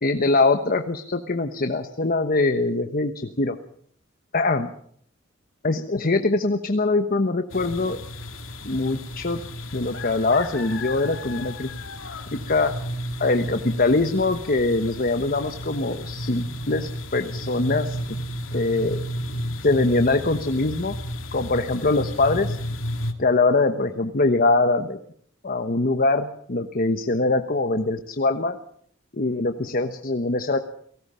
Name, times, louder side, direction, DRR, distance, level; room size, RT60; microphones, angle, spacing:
voice 1, 0.0-3.6 4.3-4.7 5.6-8.0 8.6-9.4 9.7-11.7 12.5-12.7 13.2-18.0 18.5-19.0 19.6-21.0 21.3-22.6 23.2-25.0 25.4-28.6 29.1-30.6, left 3 dB, 45° left, 8 dB, 1.2 m, -23 dB
sound 1, 7.5-23.1, equal, 85° left, 2.4 m, -33 dB
29.0 x 18.5 x 5.7 m, 0.62 s
head